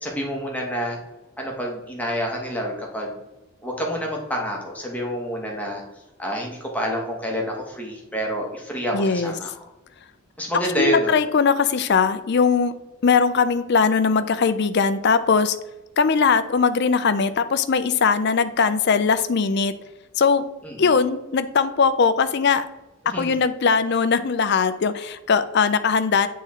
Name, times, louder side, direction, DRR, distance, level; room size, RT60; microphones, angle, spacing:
voice 1, 0.0-1.0 1.4-3.2 3.6-5.8 6.2-9.5 10.4-11.2 20.6-20.9 23.1-23.3, equal, 5° left, -1 dB, 1.1 m, -28 dB
voice 2, 8.9-9.3 10.8-12.8 13.0-15.6 16.0-19.7 20.2-20.4 20.8-22.6 23.1-26.3, left 5 dB, 50° left, 12 dB, 0.4 m, -20 dB
8.1 x 3.7 x 4.2 m, 1.0 s
head